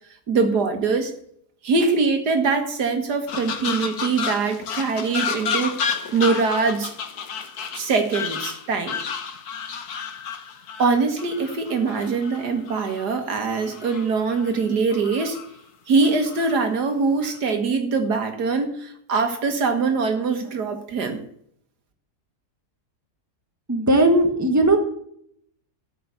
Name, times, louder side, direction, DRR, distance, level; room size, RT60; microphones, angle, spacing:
voice 1, 0.3-1.1 1.6-5.7 6.1-6.9 7.7-9.0 10.8-15.4 15.9-21.2, right 4 dB, 85° right, 6 dB, 2.1 m, -23 dB
sound 1, 3.3-13.0 13.5-14.6 14.9-15.5 16.0-16.6 17.2-17.5, left 6 dB, 70° left, 1.7 m, -31 dB
voice 2, 23.7-24.8, right 2 dB, 10° right, 4 dB, 1.5 m, -17 dB
13.5 x 6.0 x 8.2 m, 0.68 s
omnidirectional pair, 1.7 m